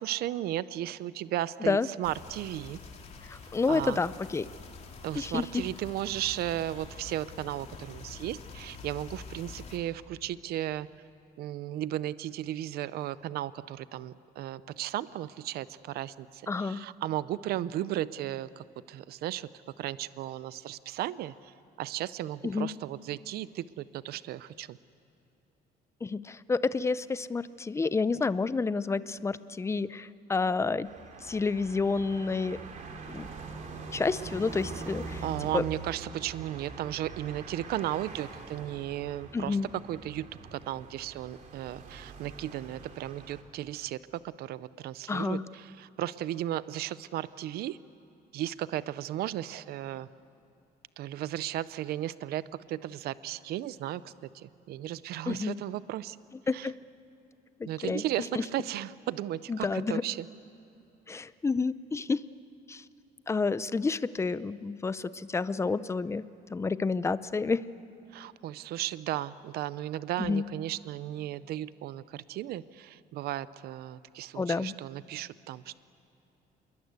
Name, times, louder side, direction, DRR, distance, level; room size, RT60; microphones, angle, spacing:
voice 1, 0.0-2.8 3.7-4.0 5.0-10.9 11.4-19.5 19.8-24.8 35.2-44.0 44.2-47.8 48.3-50.1 51.0-56.2 56.5-56.7 57.7-60.3 68.1-75.8, right 13 dB, 70° right, 16 dB, 0.6 m, -35 dB
sound 1, 2.0-9.8, left 4 dB, 40° left, 3.1 m, -47 dB
voice 2, 3.3-4.5 5.2-5.6 16.5-16.8 22.4-22.7 26.0-30.9 31.2-32.6 33.1-33.3 33.9-35.2 35.5-35.6 39.3-39.7 45.1-45.4 55.3-55.6 56.5-56.8 57.6-58.0 58.3-58.4 59.5-60.0 61.1-62.2 62.7-62.8 63.3-66.2 66.5-67.7 70.2-70.5 74.3-74.7, left 4 dB, 15° left, 16 dB, 0.6 m, -29 dB
sound 2, 30.8-43.4, right 4 dB, 50° right, 3.2 m, -44 dB
27.0 x 22.0 x 8.2 m, 2.9 s
cardioid pair, 135°, 17 cm